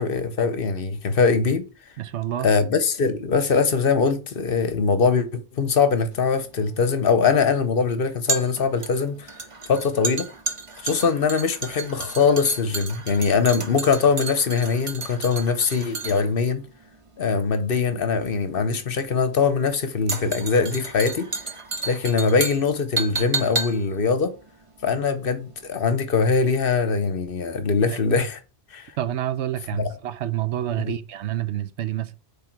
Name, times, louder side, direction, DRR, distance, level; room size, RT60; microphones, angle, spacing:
voice 1, 0.0-1.7 2.4-9.4 9.7-10.3 10.8-16.6 17.2-21.3 21.8-24.4 24.8-28.4 28.7-28.9 29.7-29.9 30.8-31.0, left 5 dB, 55° left, 1.0 m, -22 dB
voice 2, 2.0-2.5 27.9-28.0 29.0-32.1, right 12 dB, 80° right, 0.9 m, -28 dB
sound 1, 6.1-25.4 25.7-25.8, right 4 dB, 30° right, 0.8 m, -32 dB
8.1 x 3.5 x 4.5 m
omnidirectional pair, 1.2 m